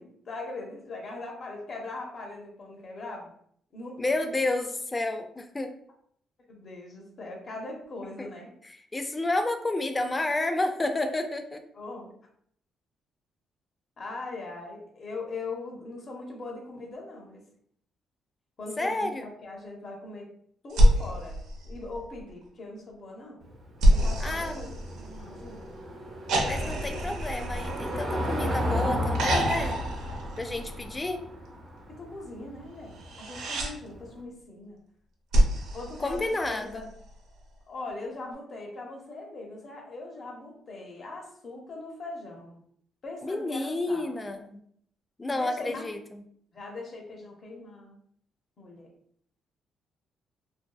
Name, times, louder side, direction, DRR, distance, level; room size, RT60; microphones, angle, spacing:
voice 1, 0.0-3.3 3.7-4.3 6.5-8.5 11.7-12.1 14.0-17.4 18.6-20.3 20.6-23.4 23.9-25.7 31.9-34.8 35.7-36.9 37.7-42.6 43.0-44.2 45.3-45.9 46.5-48.0 48.6-48.9, left 2 dB, 50° left, 0 dB, 0.7 m, -40 dB
voice 2, 4.0-5.7 8.2-8.3 8.9-11.6 18.8-19.3 24.2-24.6 26.4-29.8 30.4-31.2 36.0-36.9 43.2-44.6 45.2-46.2, left 2 dB, 20° left, 7 dB, 0.3 m, -30 dB
sound 1, 20.7-22.3 23.8-25.5 26.3-28.6 29.1-31.0 32.9-33.7 35.3-36.8 38.3-38.4, right 1 dB, 85° right, 0.5 m, -26 dB
Car passing by / Engine, 23.4-34.1, equal, 50° right, 0.8 m, -34 dB
2.6 x 2.2 x 2.2 m, 0.65 s
cardioid pair, 90°, 0 cm